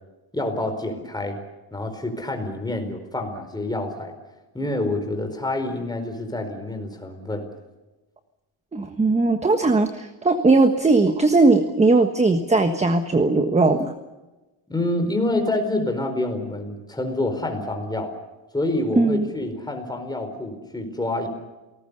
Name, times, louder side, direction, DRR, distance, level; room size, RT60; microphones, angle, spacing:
voice 1, 0.3-1.4 1.7-4.1 4.5-7.5 14.7-18.1 18.5-21.3, left 2 dB, 10° left, 5 dB, 4.5 m, -27 dB
voice 2, 8.7-13.9 19.0-19.3, right 3 dB, 15° right, 7 dB, 1.4 m, -19 dB
28.5 x 19.0 x 6.8 m, 1.1 s
cardioid pair, 135°, 50 cm